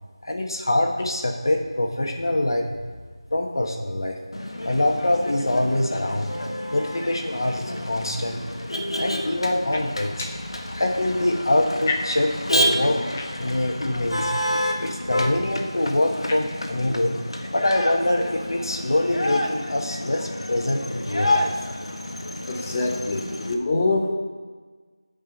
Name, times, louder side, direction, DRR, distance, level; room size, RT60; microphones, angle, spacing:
voice 1, 0.2-2.7 3.3-4.2 4.6-6.3 6.7-8.4 8.9-10.1 10.7-13.0 13.4-14.3 14.8-17.2 17.5-21.5, left 1 dB, 45° left, 2 dB, 1.6 m, -24 dB
Motor vehicle (road), 4.3-23.5, left 1 dB, 65° left, 1.5 m, -29 dB
voice 2, 22.5-24.1, left 2 dB, 15° left, 1 dB, 0.9 m, -24 dB
15.0 x 5.6 x 5.4 m, 1.4 s
figure-of-eight pair, 175°, 3 cm